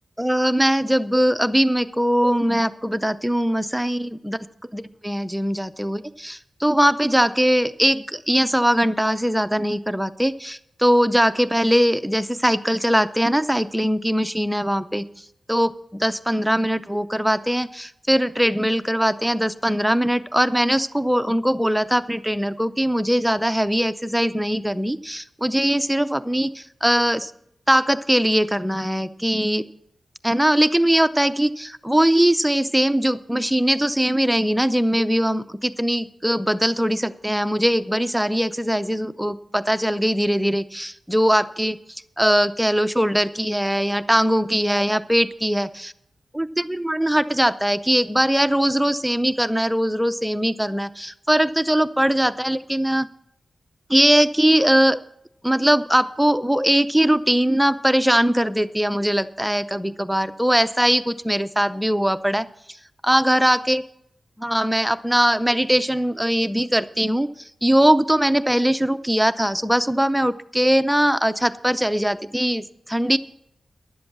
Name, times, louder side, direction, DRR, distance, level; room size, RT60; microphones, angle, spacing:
voice 1, 0.2-4.4 4.7-27.3 27.7-29.6 30.2-41.8 42.2-45.9 46.3-53.1 53.9-55.0 55.4-62.5 63.0-63.8 64.4-73.2, equal, 5° right, 12 dB, 0.6 m, -21 dB
11.5 x 7.6 x 7.2 m, 0.75 s
cardioid pair, 70°, 0 cm